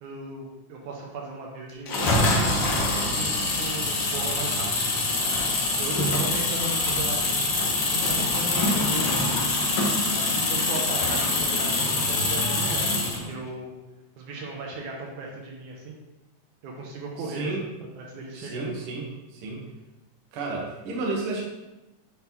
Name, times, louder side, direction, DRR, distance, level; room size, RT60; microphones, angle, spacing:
voice 1, 0.0-5.4 5.8-7.6 7.8-9.4 10.1-12.9 13.2-13.7 14.2-15.9 16.6-17.7 18.0-18.8, right 2 dB, 75° right, -1 dB, 2.2 m, -37 dB
sound 1, 1.9-13.3, left 2 dB, 85° left, 1.0 m, -24 dB
voice 2, 18.4-19.1 19.3-19.6 20.3-21.4, right 3 dB, 55° right, -2 dB, 1.6 m, -31 dB
9.0 x 4.0 x 2.9 m, 1.0 s
omnidirectional pair, 3.6 m